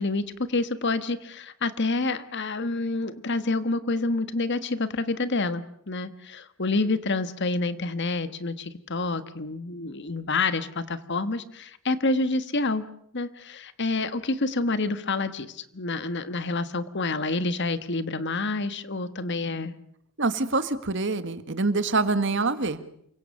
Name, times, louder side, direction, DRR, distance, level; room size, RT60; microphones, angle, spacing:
voice 1, 0.0-12.9 13.1-19.7, left 3 dB, 55° left, 12 dB, 1.5 m, -28 dB
voice 2, 20.2-22.8, right 3 dB, 60° right, 12 dB, 1.7 m, -25 dB
28.5 x 24.5 x 6.7 m, 0.70 s
head